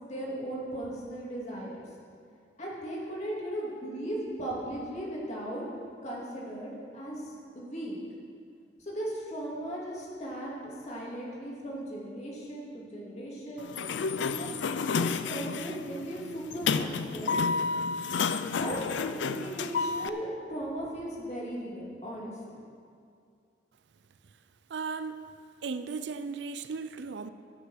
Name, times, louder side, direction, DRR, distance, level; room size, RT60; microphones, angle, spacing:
voice 1, 0.0-1.8 2.6-5.6 6.0-7.2 7.5-8.0 8.8-13.7 14.2-14.5 14.9-17.4 18.6-18.8 19.1-22.3, right 1 dB, 40° left, -4 dB, 2.8 m, -37 dB
Sliding door, 13.6-20.1, left 5 dB, 85° left, 0.5 m, -31 dB
voice 2, 24.7-25.2 25.6-27.3, right 4 dB, 75° right, 12 dB, 0.5 m, -36 dB
14.0 x 6.7 x 6.5 m, 2.3 s
head